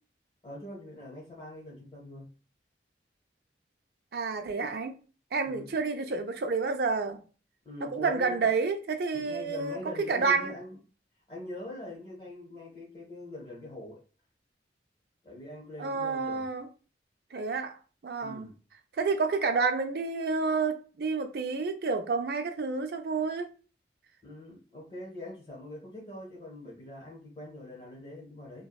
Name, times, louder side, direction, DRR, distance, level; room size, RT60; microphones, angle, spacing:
voice 1, 0.4-2.3 5.5-5.7 7.6-8.5 9.1-10.8 11.3-14.0 15.2-16.4 18.2-18.6 24.2-28.7, left 1 dB, 25° left, 0.9 m, -43 dB
voice 2, 4.1-5.0 5.3-7.2 7.8-9.8 10.1-10.5 15.8-16.7 17.3-17.8 18.0-18.5 19.0-23.5, right 4 dB, 60° right, 0.4 m, -29 dB
2.6 x 2.2 x 2.2 m
head